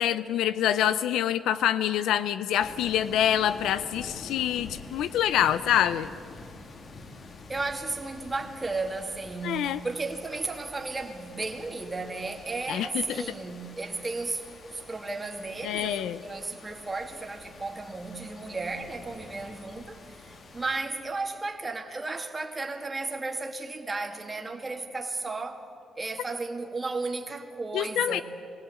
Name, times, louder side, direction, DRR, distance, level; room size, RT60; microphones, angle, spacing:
voice 1, 0.0-6.1 9.4-9.8 12.7-13.0 15.6-16.2 27.7-28.2, left 10 dB, 85° left, 0.5 m, -26 dB
sound 1, 2.6-20.8, left 3 dB, 50° left, 2.0 m, -47 dB
voice 2, 7.5-25.6 26.0-28.2, right 3 dB, 25° right, 2.1 m, -34 dB
22.0 x 16.5 x 8.4 m
cardioid pair, 90°, 0 cm